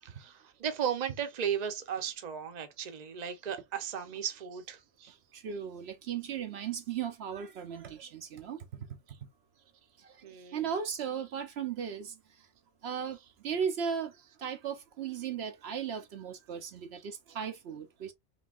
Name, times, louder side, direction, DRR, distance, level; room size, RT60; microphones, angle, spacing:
voice 1, 0.0-5.1 10.2-10.6, right 8 dB, 40° right, 0.8 m, -36 dB
voice 2, 5.3-8.9 10.0-10.2 10.5-12.1 12.8-13.2 13.4-14.1 14.4-18.1, right 7 dB, 70° right, 0.9 m, -36 dB
5.2 x 3.1 x 2.4 m
omnidirectional pair, 1.2 m